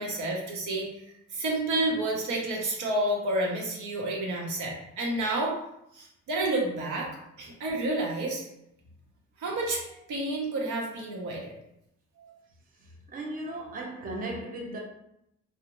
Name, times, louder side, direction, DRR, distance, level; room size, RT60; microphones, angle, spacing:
voice 1, 0.0-5.6 5.9-7.1 7.4-8.5 9.4-11.5 12.2-12.3, right 2 dB, 75° right, -2 dB, 0.8 m, -30 dB
voice 2, 12.8-14.8, right 1 dB, 30° right, -1 dB, 0.5 m, -36 dB
2.5 x 2.0 x 2.9 m, 0.82 s
cardioid pair, 90°, 30 cm